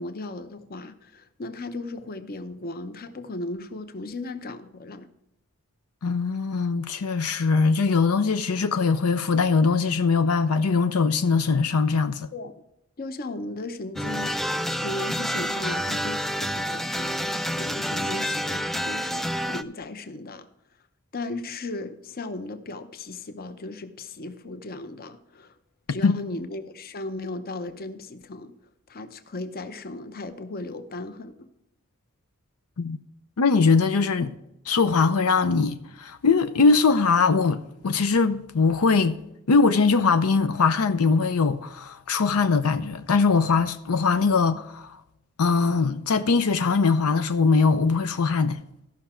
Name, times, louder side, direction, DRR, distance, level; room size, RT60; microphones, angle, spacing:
voice 1, 0.0-5.1 12.3-12.5 13.0-20.5 21.1-25.5 25.9-28.5 28.9-31.5, left 2 dB, 45° left, 0.8 m, -36 dB
voice 2, 6.0-12.3 26.0-26.2 32.8-33.0 33.4-34.3 34.7-39.2 39.5-45.0 45.4-48.6, left 4 dB, 85° left, 0.6 m, -21 dB
sound 1, 14.0-19.6, equal, ahead, 0.3 m, -28 dB
14.5 x 5.9 x 4.4 m
head